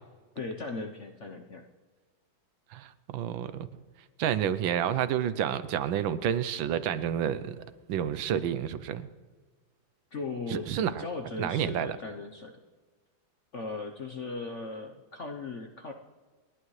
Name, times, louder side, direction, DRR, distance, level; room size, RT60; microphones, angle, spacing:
voice 1, 0.3-1.6 10.1-12.5 13.5-15.9, left 3 dB, 50° left, 3 dB, 0.9 m, -38 dB
voice 2, 2.7-3.7 4.2-9.1 10.5-11.0 11.4-12.0, right 9 dB, 75° right, 13 dB, 1.4 m, -30 dB
29.5 x 11.0 x 3.2 m, 1.4 s
omnidirectional pair, 2.3 m